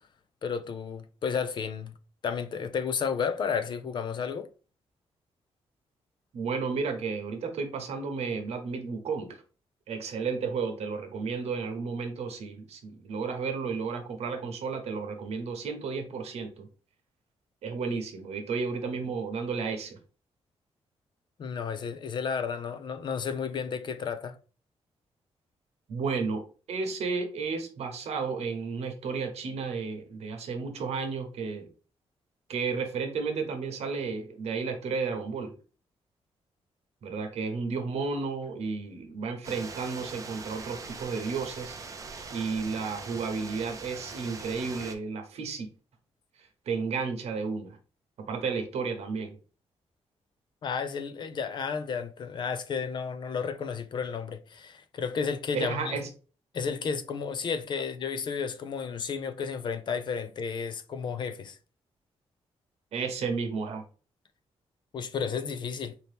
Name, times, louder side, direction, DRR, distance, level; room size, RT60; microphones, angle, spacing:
voice 1, 0.4-1.9 2.2-4.5 21.4-24.3 50.6-56.0 56.5-61.6 64.9-65.9, left 6 dB, 45° left, 0.4 m, -32 dB
voice 2, 6.3-9.4 9.9-16.7 17.6-20.0 25.9-26.4 26.7-31.7 32.5-35.5 37.0-41.7 42.3-45.7 46.7-47.8 48.3-49.4 55.5-56.1 62.9-63.8, right 5 dB, 75° right, 0.9 m, -32 dB
sound 1, 39.4-45.0, right 4 dB, 30° right, 0.5 m, -42 dB
4.1 x 2.8 x 3.4 m
wide cardioid pair, 155°, 11 cm